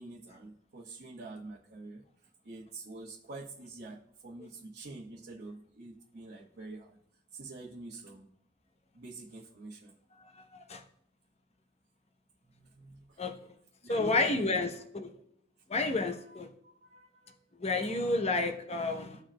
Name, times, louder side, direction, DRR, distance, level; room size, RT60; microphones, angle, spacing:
voice 1, 0.0-7.0 7.3-8.3 8.9-9.9 12.4-13.2 13.8-14.7 15.8-17.5, right 2 dB, 60° right, -6 dB, 1.1 m, -47 dB
voice 2, 13.9-14.7 14.9-15.1 15.7-16.5 17.6-19.2, left 3 dB, 35° left, 5 dB, 0.8 m, -30 dB
14.5 x 5.0 x 2.2 m, 0.70 s
head